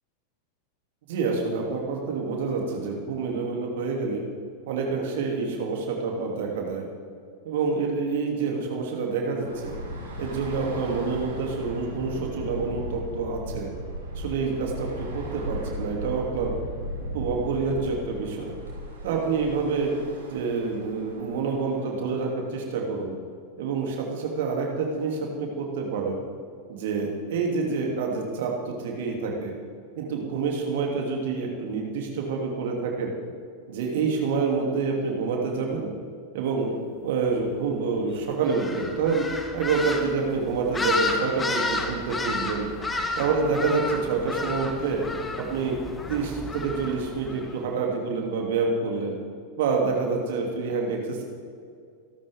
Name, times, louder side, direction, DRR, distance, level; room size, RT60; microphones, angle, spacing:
voice 1, 1.1-4.2 4.7-6.8 7.4-9.8 10.2-13.7 14.1-16.5 17.1-18.6 19.0-19.9 20.3-23.1 23.6-26.2 26.7-29.5 30.0-33.1 33.7-35.9 36.3-36.7 37.0-39.3 39.5-42.7 43.2-45.0 45.4-45.8 46.1-49.2 49.6-51.2, right 4 dB, 55° right, 0 dB, 2.9 m, -27 dB
Bus / Traffic noise roadway noise, 9.4-21.9, equal, 75° right, 4.4 m, -37 dB
sound 1, 38.4-47.5, left 2 dB, 15° left, 1.6 m, -31 dB
26.5 x 12.5 x 3.7 m, 2.2 s
figure-of-eight pair, 90°, 0 cm